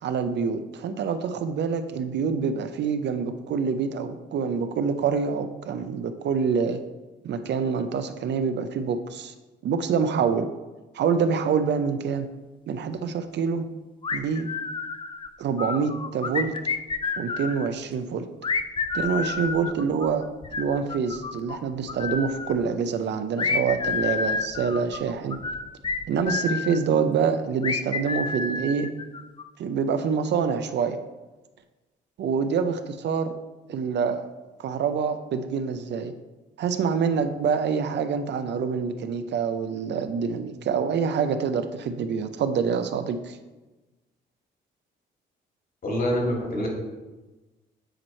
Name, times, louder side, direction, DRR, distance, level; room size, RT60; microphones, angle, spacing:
voice 1, 0.0-6.8 7.2-9.3 9.6-10.5 10.9-12.3 12.7-13.7 14.1-14.5 15.4-16.5 17.2-18.3 18.9-20.3 20.6-25.4 26.1-28.9 29.6-31.0 32.2-33.4 33.7-34.3 34.6-36.1 36.6-43.4, right 6 dB, 60° right, 9 dB, 0.5 m, -26 dB
sound 1, 14.0-15.3 15.6-17.7 18.4-21.6 21.9-22.6 23.4-26.8 27.6-29.4, left 4 dB, 25° left, 0.4 m, -29 dB
voice 2, 45.8-46.7, equal, 45° left, -1 dB, 2.2 m, -25 dB
8.9 x 3.1 x 4.3 m, 1.1 s
cardioid pair, 90°, 20 cm